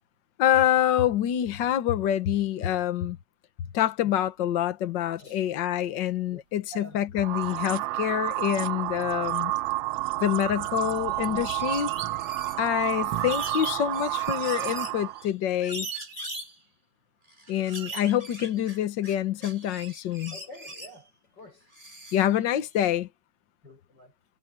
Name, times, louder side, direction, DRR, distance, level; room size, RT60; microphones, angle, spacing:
voice 1, 0.4-3.2 3.7-9.5 10.2-11.9 12.6-15.9 17.5-20.4 22.1-23.1, left 11 dB, 65° left, 1.1 m, -26 dB
sound 1, 4.2-7.9 8.2-8.5 8.8-12.7 12.9-14.3, right 10 dB, 55° right, 2.0 m, -45 dB
voice 2, 6.7-7.0 20.3-21.1 21.3-21.6 23.6-24.1, equal, 35° left, 6.0 m, -47 dB
sound 2, 7.2-15.2, right 17 dB, 75° right, 1.8 m, -30 dB
sound 3, 10.8-10.9 11.1-12.8 13.2-15.3 15.6-16.5 17.3-19.2 19.4-20.9 21.7-22.4, right 1 dB, 15° right, 5.4 m, -40 dB
omnidirectional pair, 3.3 m